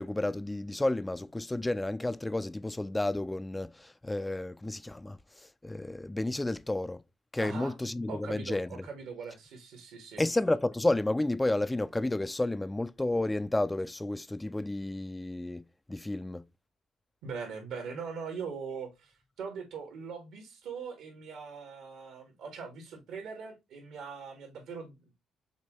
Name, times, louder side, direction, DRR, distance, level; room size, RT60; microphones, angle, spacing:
voice 1, 0.0-5.2 5.6-7.0 7.3-8.9 10.2-15.6 15.9-16.4, left 2 dB, 15° left, 0.3 m, -31 dB
voice 2, 7.4-7.7 8.1-10.2 17.2-19.1 19.4-25.2, right 5 dB, 85° right, 2.0 m, -41 dB
6.5 x 2.6 x 3.1 m
cardioid pair, 90°, 0 cm